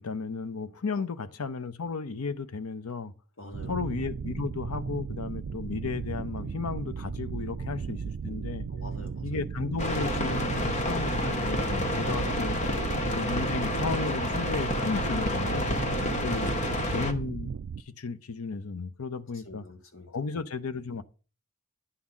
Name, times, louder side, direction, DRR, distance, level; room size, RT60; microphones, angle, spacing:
voice 1, 0.0-3.1 3.7-8.7 9.2-12.6 13.1-16.5 16.9-17.5 17.9-19.6 20.1-21.0, left 4 dB, 85° left, 0.7 m, -34 dB
voice 2, 3.4-3.8 7.5-7.6 8.7-9.4 9.6-9.7 16.5-17.1 19.3-20.1, left 2 dB, 60° left, 1.9 m, -46 dB
sound 1, 3.5-17.8, right 6 dB, 55° right, 0.3 m, -36 dB
sound 2, 9.8-17.1, left 1 dB, 35° left, 0.9 m, -29 dB
9.9 x 4.0 x 7.2 m
head